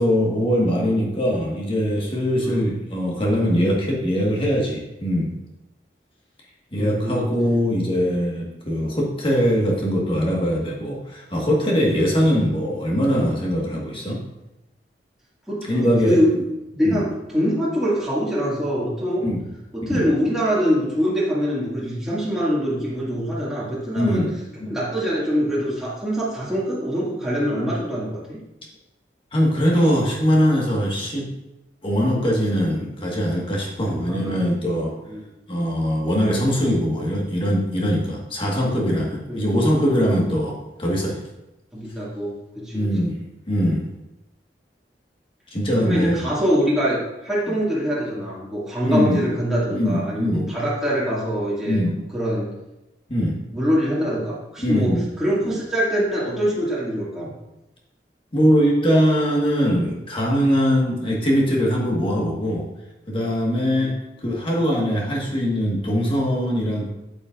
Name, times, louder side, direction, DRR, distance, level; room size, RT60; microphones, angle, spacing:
voice 1, 0.0-5.3 6.7-14.2 15.6-16.2 16.8-17.0 19.2-19.4 19.8-20.1 23.9-24.3 24.6-24.7 29.3-31.3 31.8-34.9 35.5-41.2 42.7-43.2 43.5-43.8 45.5-46.2 47.5-47.6 48.8-49.2 49.7-50.5 51.6-51.9 53.1-53.4 54.6-55.0 58.3-62.7 63.1-63.9 64.2-66.9, equal, 30° left, -1 dB, 1.6 m, -21 dB
voice 2, 6.8-7.3 15.5-16.3 16.8-17.0 17.3-19.3 19.7-24.3 24.7-28.4 33.9-34.4 35.1-35.2 39.3-39.4 41.7-42.9 45.7-51.8 52.1-52.5 53.5-57.3 63.8-63.9, equal, 5° right, -8 dB, 2.2 m, -24 dB
8.3 x 8.1 x 2.5 m, 0.94 s
head